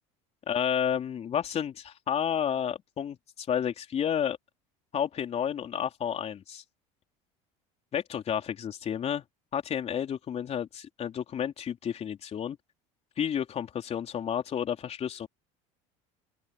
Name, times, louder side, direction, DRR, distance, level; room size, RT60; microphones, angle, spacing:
voice 1, 0.5-4.4 4.9-6.6 7.9-9.2 9.5-12.6 13.2-15.3, left 9 dB, 40° left, 3.6 m, -31 dB
open air
supercardioid pair, 105°, 17 cm